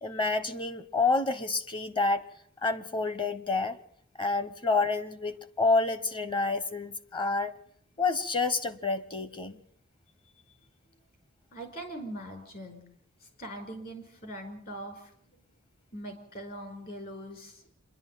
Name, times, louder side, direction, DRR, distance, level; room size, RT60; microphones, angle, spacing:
voice 1, 0.0-2.3 2.6-3.8 4.2-7.5 8.0-9.6, left 3 dB, 25° left, 1.0 m, -28 dB
voice 2, 11.5-12.8 13.2-15.4 15.9-17.6, right 1 dB, 45° left, 5.1 m, -42 dB
26.5 x 11.0 x 9.2 m
head